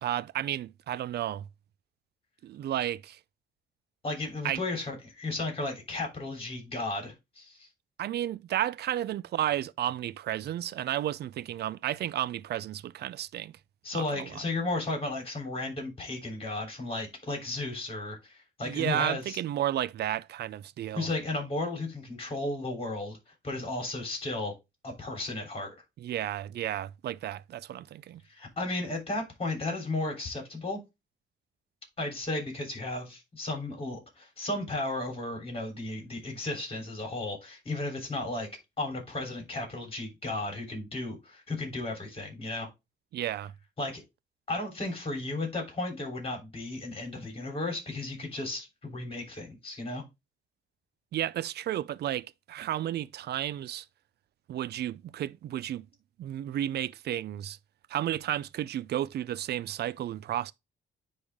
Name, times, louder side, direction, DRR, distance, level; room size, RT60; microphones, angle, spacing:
voice 1, 0.0-1.5 2.4-3.2 4.4-4.6 8.0-13.5 13.9-14.4 18.6-21.1 26.0-28.2 43.1-43.5 51.1-53.9 54.5-55.9 56.2-57.6 57.9-60.5, right 12 dB, 55° right, 0.4 m, -32 dB
voice 2, 4.0-7.7 13.8-19.4 20.9-23.2 23.4-24.5 24.8-25.7 28.3-30.8 32.0-38.5 38.8-42.7 43.8-44.0 44.5-50.0, left 2 dB, 30° left, 3.4 m, -34 dB
9.6 x 3.5 x 3.5 m
cardioid pair, 90°, 20 cm